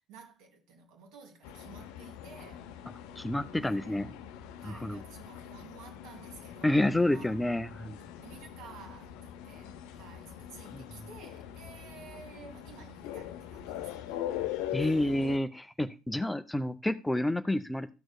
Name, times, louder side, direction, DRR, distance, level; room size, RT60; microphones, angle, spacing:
voice 1, 0.1-2.7 3.6-4.0 4.6-7.4 8.2-14.2 14.8-15.1, right 5 dB, 60° right, 2.0 m, -52 dB
sound 1, 1.4-15.4, left 11 dB, 65° left, 0.6 m, -42 dB
voice 2, 3.2-4.1 4.6-5.0 6.6-8.0 10.7-10.8 14.7-17.9, left 1 dB, 10° left, 0.5 m, -29 dB
14.0 x 6.2 x 2.2 m
figure-of-eight pair, 55°, 0 cm